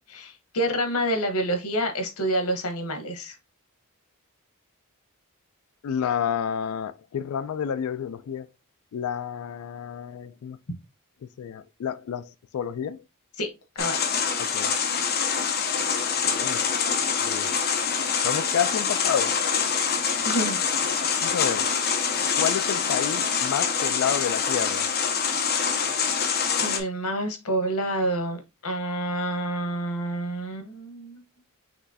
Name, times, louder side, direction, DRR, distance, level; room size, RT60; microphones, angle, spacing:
voice 1, 0.1-3.3 13.4-13.5 13.7-14.0 20.2-20.6 26.6-31.2, right 1 dB, 90° left, 1.1 m, -28 dB
voice 2, 5.8-8.5 8.9-10.6 11.4-13.0 14.4-14.7 16.3-16.7 17.2-17.5 18.2-19.4 21.2-21.9 22.4-24.9, left 8 dB, 70° left, 0.3 m, -30 dB
sound 1, 13.8-26.8, left 6 dB, 45° left, 0.8 m, -25 dB
5.9 x 3.1 x 2.7 m
head